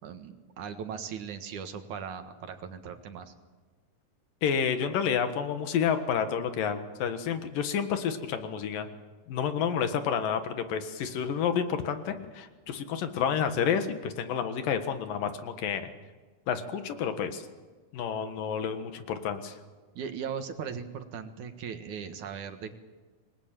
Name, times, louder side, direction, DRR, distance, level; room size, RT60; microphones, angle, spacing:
voice 1, 0.0-3.3 20.0-22.7, right 7 dB, 65° right, 7 dB, 2.9 m, -38 dB
voice 2, 4.4-8.9 9.3-15.9 16.5-17.4 17.9-19.6, left 7 dB, 85° left, 8 dB, 3.3 m, -30 dB
26.5 x 20.5 x 9.0 m, 1.4 s
omnidirectional pair, 3.8 m